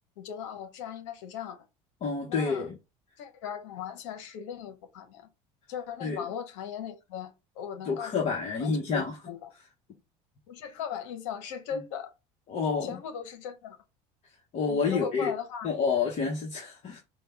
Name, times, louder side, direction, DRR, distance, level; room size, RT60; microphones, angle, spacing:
voice 1, 0.2-1.6 2.3-2.7 3.2-5.3 5.7-9.5 10.5-12.1 12.8-13.8 14.7-15.7, left 8 dB, 85° left, 1.0 m, -38 dB
voice 2, 2.0-2.7 6.0-6.2 7.8-9.1 12.5-13.0 14.5-15.3 15.6-17.0, left 5 dB, 45° left, 1.2 m, -28 dB
5.2 x 2.3 x 3.4 m
supercardioid pair, 110°, 16 cm